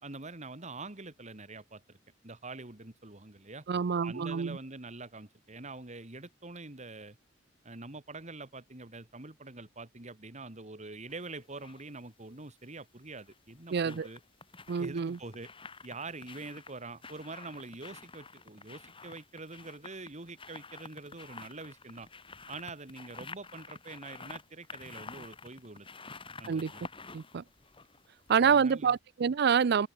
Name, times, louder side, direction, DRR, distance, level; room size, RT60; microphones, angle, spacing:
voice 1, 0.0-2.0 2.2-3.7 4.0-7.2 7.6-14.2 14.8-15.5 15.8-22.1 22.5-25.9 26.4-26.8 28.4-29.0, right 3 dB, 40° right, 2.2 m, -45 dB
voice 2, 3.7-4.6 13.7-14.1 14.7-15.2 26.5-26.7 27.1-27.4 28.3-29.9, right 6 dB, 60° right, 0.4 m, -27 dB
sound 1, 11.1-11.8 13.1-28.6 28.9-29.0, left 4 dB, 30° left, 7.1 m, -50 dB
head